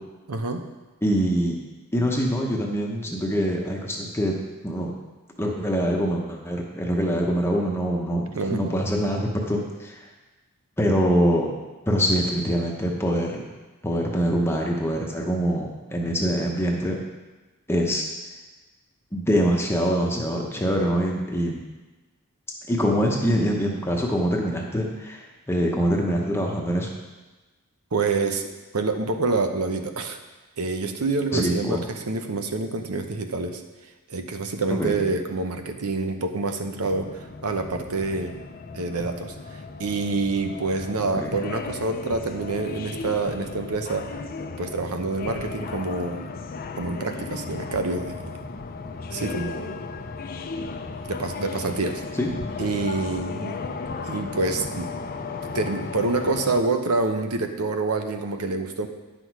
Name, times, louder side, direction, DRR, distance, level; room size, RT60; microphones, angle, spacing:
voice 1, 0.3-0.6 8.3-8.6 27.9-28.5 28.7-30.2 30.6-33.6 34.1-38.4 38.7-46.3 46.8-48.5 49.1-49.8 51.1-52.0 52.6-53.6 54.0-54.9 55.4-58.9, right 3 dB, 75° right, 6 dB, 0.8 m, -27 dB
voice 2, 1.0-1.6 1.9-4.3 4.6-4.9 5.4-10.0 10.8-11.5 11.9-13.5 13.8-17.0 17.7-18.0 19.1-21.6 22.7-26.9 31.3-31.8 34.7-35.0 41.2-41.4 52.2-52.3, equal, 10° left, -1 dB, 0.9 m, -24 dB
sound 1, 36.8-56.6, left 4 dB, 40° left, 0.5 m, -35 dB
9.9 x 6.1 x 4.7 m, 1.2 s
head